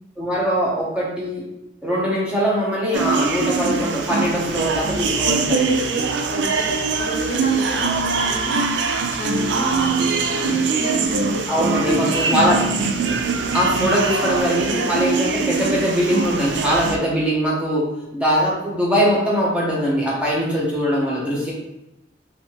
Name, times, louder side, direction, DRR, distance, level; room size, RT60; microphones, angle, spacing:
voice 1, 0.2-1.4 1.8-5.9 11.5-12.6 13.5-17.8 18.1-21.5, equal, 5° right, -6 dB, 0.8 m, -21 dB
sound 1, 2.9-17.0, right 4 dB, 70° right, 0.4 m, -22 dB
voice 2, 6.3-8.8 9.1-11.5 11.7-12.6, left 1 dB, 60° left, 0 dB, 0.6 m, -30 dB
3.2 x 2.7 x 2.9 m, 0.90 s
head